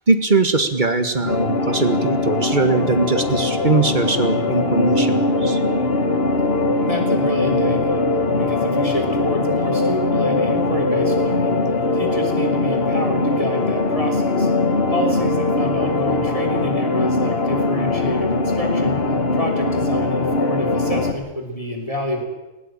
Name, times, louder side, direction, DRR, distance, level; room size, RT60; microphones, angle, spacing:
voice 1, 0.1-5.6, right 3 dB, 35° right, 8 dB, 1.9 m, -20 dB
sound 1, 1.3-21.1, left 2 dB, 45° left, 1.8 m, -21 dB
voice 2, 6.8-8.0 8.4-11.6 11.9-14.5 14.9-19.0 19.3-22.2, equal, 25° left, 3 dB, 3.3 m, -28 dB
19.0 x 17.0 x 9.0 m, 1.0 s
omnidirectional pair, 1.4 m